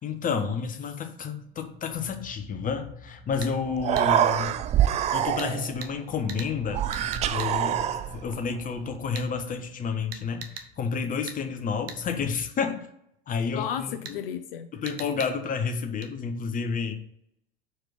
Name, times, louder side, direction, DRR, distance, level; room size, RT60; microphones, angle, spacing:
voice 1, 0.0-4.5 5.1-6.9 7.3-12.9 13.3-14.2 14.7-16.9, left 5 dB, 25° left, 6 dB, 1.1 m, -30 dB
sound 1, 1.4-12.3, left 4 dB, 50° right, 2.2 m, -47 dB
Human voice, 3.3-3.4 3.7-5.8 6.7-8.4, right 11 dB, 25° right, 0.3 m, -25 dB
sound 2, 3.4-3.5 4.0-4.1 5.4-5.5 5.8-5.9 6.3-6.5 6.9-7.5 9.1-9.3 10.1-10.7 11.3-11.4 11.9-12.0 14.0-14.2 14.9-15.3 16.0-16.1, right 6 dB, 70° right, 1.0 m, -40 dB
voice 2, 13.5-14.7, left 9 dB, 65° left, 8 dB, 0.6 m, -33 dB
4.9 x 4.7 x 6.1 m, 0.75 s
figure-of-eight pair, 80°, 30 cm